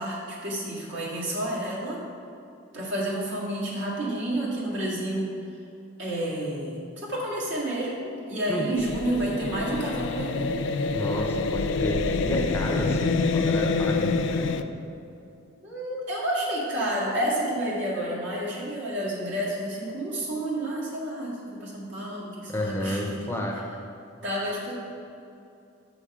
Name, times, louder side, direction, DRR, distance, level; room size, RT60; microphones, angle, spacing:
voice 1, 0.0-2.0 2.7-5.3 6.0-10.5 15.6-23.3 24.2-24.7, right 1 dB, 65° right, -6 dB, 2.0 m, -30 dB
voice 2, 8.5-8.8 10.9-14.6 22.5-23.8, equal, 10° left, 0 dB, 0.6 m, -30 dB
sound 1, 8.8-14.6, left 4 dB, 65° left, 0.4 m, -27 dB
7.0 x 6.1 x 4.8 m, 2.6 s
head